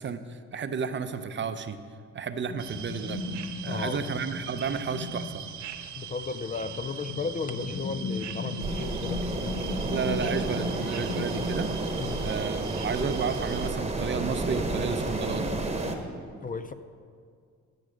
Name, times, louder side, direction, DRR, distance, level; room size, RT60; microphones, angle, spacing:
voice 1, 0.0-1.8 2.1-3.2 3.6-5.4 9.8-11.7 12.2-15.5, right 6 dB, 40° right, 10 dB, 0.6 m, -32 dB
sound 1, 2.5-11.8, left 3 dB, 70° left, 1.2 m, -36 dB
sound 2, 2.6-13.7, right 9 dB, 70° right, 0.7 m, -42 dB
voice 2, 3.7-4.0 5.9-9.2 12.0-12.3 16.4-16.7, left 4 dB, 30° left, 10 dB, 0.4 m, -34 dB
sound 3, 8.6-16.0, right 2 dB, 20° right, 1.1 m, -31 dB
13.5 x 6.2 x 5.0 m, 2.2 s
cardioid pair, 90°, 30 cm